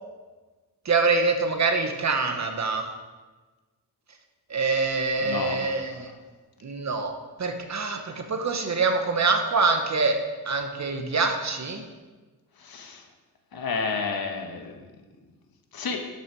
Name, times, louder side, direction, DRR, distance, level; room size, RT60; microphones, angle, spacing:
voice 1, 0.8-2.8 4.5-6.1 6.6-7.1 7.4-10.2 10.5-11.8, right 4 dB, 45° right, 5 dB, 1.1 m, -25 dB
voice 2, 4.6-5.6 5.9-6.2 12.6-13.0 13.5-14.8 15.7-16.0, left 5 dB, 65° left, 4 dB, 1.3 m, -32 dB
11.5 x 6.4 x 4.6 m, 1.3 s
wide cardioid pair, 130°, 38 cm